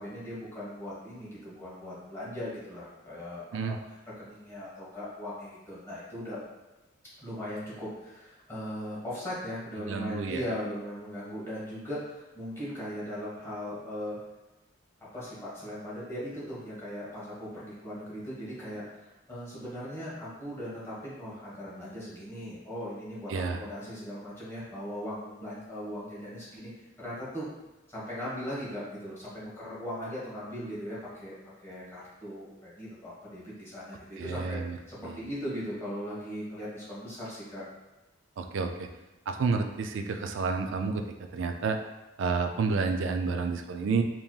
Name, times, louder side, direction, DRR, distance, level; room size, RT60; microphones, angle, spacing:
voice 1, 0.0-6.4 7.2-14.2 15.0-26.7 27.0-27.5 27.9-31.3 31.6-34.6 34.9-37.6, equal, 15° left, -9 dB, 1.3 m, -39 dB
voice 2, 9.8-10.4 23.3-23.6 34.2-34.8 38.4-38.9 39.3-41.0 41.3-41.8 42.2-44.0, right 4 dB, 70° right, 6 dB, 0.4 m, -30 dB
5.2 x 3.0 x 2.3 m, 1.0 s
head